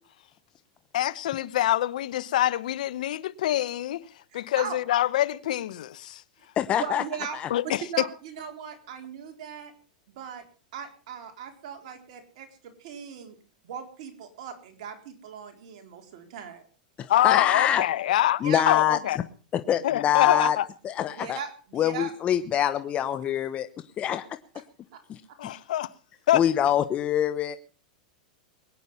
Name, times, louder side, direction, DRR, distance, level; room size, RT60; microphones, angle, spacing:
voice 1, 0.9-4.0 4.3-6.2 7.5-7.8 17.1-18.4 18.7-19.2 19.8-20.7 25.4-25.9 26.3-26.4, left 13 dB, 75° left, 1.0 m, -25 dB
voice 2, 4.3-4.8 6.4-6.5 6.8-7.4 7.6-9.7 10.1-10.4 10.7-13.4 13.6-16.7 18.4-18.6 21.1-22.1 24.9-25.0, right 7 dB, 65° right, 4.2 m, -38 dB
voice 3, 6.6-7.0 17.0-17.8 18.4-19.0 19.5-20.6 20.8-21.4 21.7-23.7 24.0-24.2 26.3-27.6, left 10 dB, 30° left, 1.0 m, -24 dB
22.0 x 10.5 x 5.6 m
hypercardioid pair, 120°, 4 cm